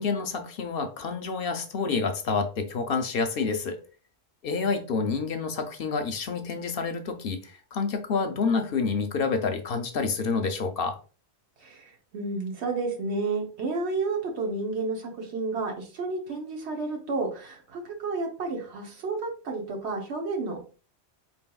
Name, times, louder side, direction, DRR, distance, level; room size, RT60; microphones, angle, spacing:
voice 1, 0.0-3.8 4.4-11.0, left 4 dB, 65° left, 7 dB, 0.7 m, -28 dB
voice 2, 11.6-20.6, right 3 dB, 75° right, 1 dB, 1.2 m, -31 dB
4.4 x 3.4 x 2.3 m, 0.36 s
omnidirectional pair, 1.1 m